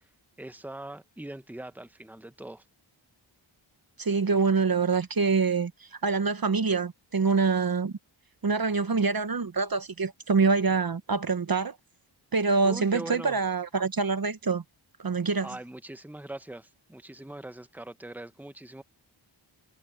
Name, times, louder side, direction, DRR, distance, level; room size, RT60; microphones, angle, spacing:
voice 1, 0.4-2.6 12.6-13.4 15.4-18.8, right 1 dB, 5° right, 1.2 m, -41 dB
voice 2, 4.0-5.7 6.0-7.9 8.4-11.7 12.3-14.6 15.0-15.5, right 4 dB, 50° right, 1.1 m, -25 dB
cardioid pair, 50°, 47 cm